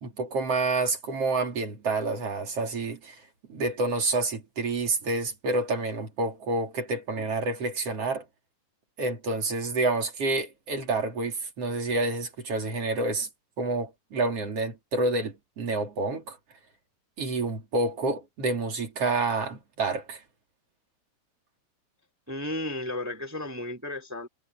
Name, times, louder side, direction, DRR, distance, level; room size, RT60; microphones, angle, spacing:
voice 1, 0.0-3.2 3.5-8.2 9.0-13.3 13.6-16.4 17.2-20.2, right 3 dB, 35° right, 3.5 m, -28 dB
voice 2, 22.3-24.3, left 1 dB, 10° right, 1.0 m, -33 dB
omnidirectional pair, 5.2 m